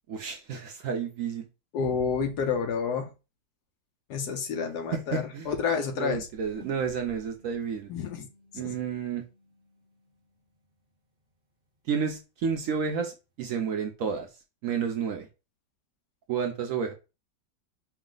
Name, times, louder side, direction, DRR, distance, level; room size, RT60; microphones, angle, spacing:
voice 1, 0.1-1.5 4.9-5.5 6.0-7.9 8.5-9.2 11.9-14.3 14.6-15.3 16.3-16.9, right 6 dB, 65° right, 4 dB, 0.8 m, -31 dB
voice 2, 1.7-3.1 4.1-6.3 7.9-8.3 8.5-8.7, left 6 dB, 70° left, 5 dB, 1.2 m, -29 dB
sound 1, 6.6-11.2, left 1 dB, 40° right, 1.0 m, -58 dB
4.7 x 2.0 x 3.7 m, 0.29 s
omnidirectional pair, 1.9 m